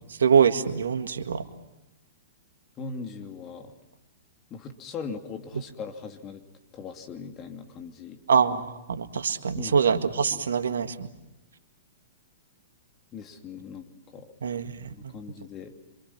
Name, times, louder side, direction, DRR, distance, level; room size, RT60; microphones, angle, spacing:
voice 1, 0.2-1.4 8.3-11.1 14.4-14.9, right 6 dB, 80° right, 9 dB, 1.8 m, -24 dB
voice 2, 2.8-3.8 4.5-6.4 6.7-8.2 9.6-9.8 10.3-10.5 13.1-13.9 14.1-14.3 14.9-15.7, left 5 dB, 30° left, 5 dB, 2.9 m, -39 dB
27.0 x 26.5 x 5.9 m, 0.95 s
hypercardioid pair, 120°, 0 cm